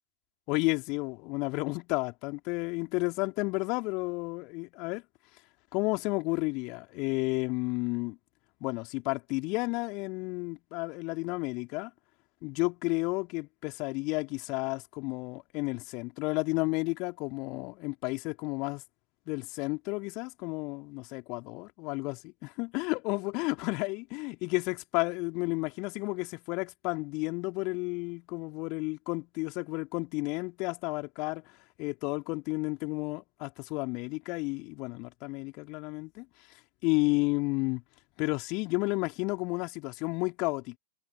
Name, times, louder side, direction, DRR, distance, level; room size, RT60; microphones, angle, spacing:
voice 1, 0.5-5.0 5.7-8.2 8.6-11.9 12.4-18.8 19.3-36.2 36.8-37.8 38.2-40.8, left 27 dB, 40° left, 3.3 m, -32 dB
figure-of-eight pair, 90°, 0 cm